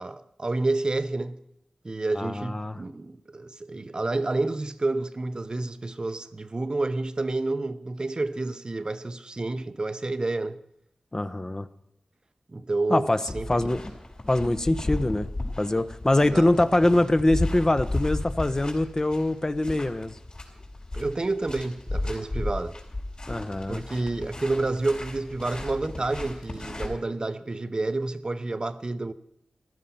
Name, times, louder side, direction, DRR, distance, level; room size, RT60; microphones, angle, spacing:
voice 1, 0.0-1.4 1.8-10.6 12.5-13.1 13.3-13.6 16.3-16.5 20.9-22.8 23.7-29.1, right 2 dB, 40° right, 0.8 m, -29 dB
voice 2, 2.1-2.8 11.1-11.7 12.9-13.2 13.5-13.8 14.3-15.3 15.6-20.2 23.3-23.8, left 1 dB, 30° left, 1.0 m, -23 dB
sound 1, 13.3-26.9, left 2 dB, 45° left, 5.3 m, -35 dB
14.0 x 12.5 x 5.7 m
cardioid pair, 45°, 2 cm